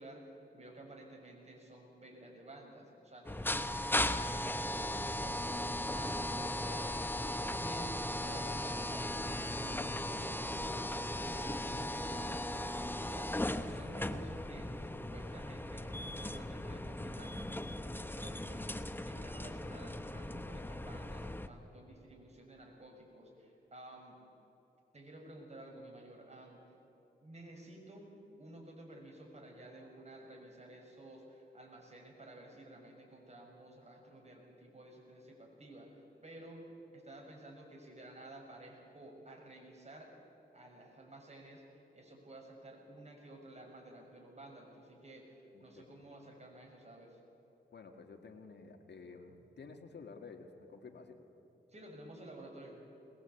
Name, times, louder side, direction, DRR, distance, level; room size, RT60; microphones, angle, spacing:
voice 1, 0.0-3.6 4.0-24.2 24.9-26.7 27.2-28.1 28.4-40.1 40.5-47.2 51.7-52.8, right 1 dB, 40° right, 0 dB, 6.4 m, -52 dB
sound 1, 3.2-21.5, left 1 dB, 10° left, 1.0 m, -37 dB
voice 2, 45.5-45.9 47.7-51.2, left 4 dB, 75° left, 5 dB, 2.1 m, -52 dB
21.5 x 21.0 x 8.3 m, 3.0 s
cardioid pair, 70°, 18 cm